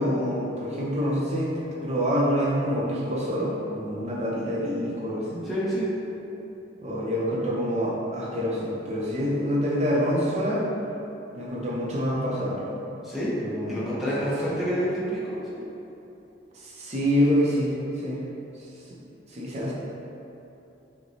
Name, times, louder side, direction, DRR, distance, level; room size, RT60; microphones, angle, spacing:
voice 1, 0.0-1.5 1.8-5.4 6.8-10.7 11.3-12.6 13.4-13.8 16.5-18.2 18.9-19.0 19.3-19.7, equal, 35° right, -5 dB, 0.6 m, -26 dB
voice 2, 5.4-5.9 13.0-13.3 13.7-15.4, equal, ahead, -10 dB, 0.8 m, -28 dB
5.7 x 2.2 x 2.7 m, 2.9 s
head